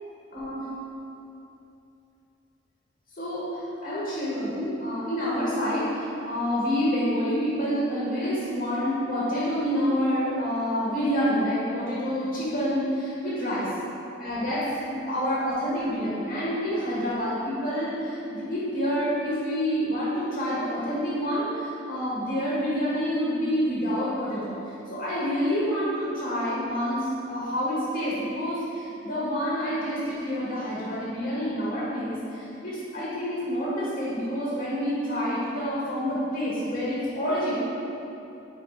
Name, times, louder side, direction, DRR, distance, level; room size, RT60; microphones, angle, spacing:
voice 1, 0.3-0.6 3.2-13.7 14.2-24.6 24.9-37.5, equal, 50° left, -8 dB, 1.5 m, -28 dB
5.5 x 4.4 x 4.8 m, 2.8 s
head